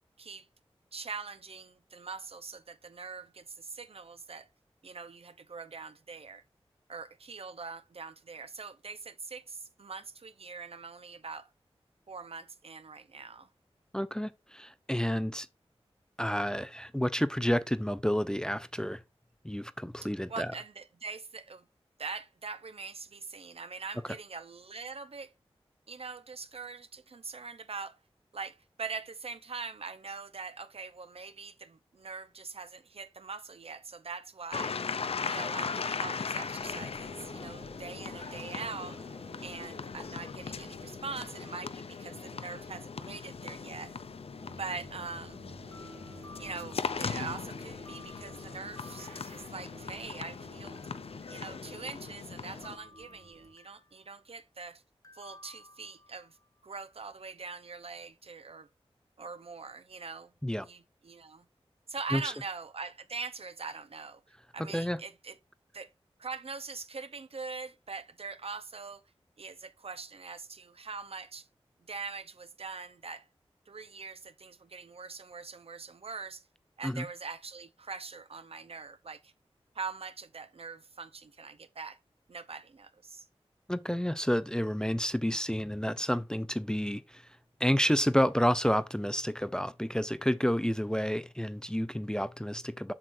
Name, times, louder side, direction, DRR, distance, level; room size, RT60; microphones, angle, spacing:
voice 1, 0.9-4.5 4.8-6.4 6.9-11.5 12.1-13.5 20.3-21.6 22.0-25.3 25.9-28.0 28.3-34.8 35.2-39.0 39.4-44.0 44.6-45.4 46.4-50.8 51.3-54.8 55.1-56.4 56.6-58.7 59.2-60.3 60.6-61.4 61.9-64.2 64.5-65.4 65.7-65.9 66.2-69.0 69.4-71.5 71.9-73.2 73.7-76.4 76.8-79.3 79.7-82.0 82.3-83.2, right 4 dB, 65° right, 0.7 m, -42 dB
voice 2, 13.9-15.5 16.2-19.0 19.4-20.5 60.4-60.7 62.1-62.2 64.7-65.0 76.8-77.1 83.7-87.2 87.6-92.9, equal, 5° left, 0.4 m, -30 dB
sound 1, 34.5-52.8, left 5 dB, 70° left, 0.5 m, -39 dB
sound 2, 36.6-53.5, right 2 dB, 85° right, 1.8 m, -53 dB
sound 3, 45.6-47.4 47.8-50.4 50.8-52.2 52.6-54.0 55.0-56.5, left 2 dB, 35° left, 1.2 m, -56 dB
7.5 x 6.2 x 2.6 m
wide cardioid pair, 65°, 11 cm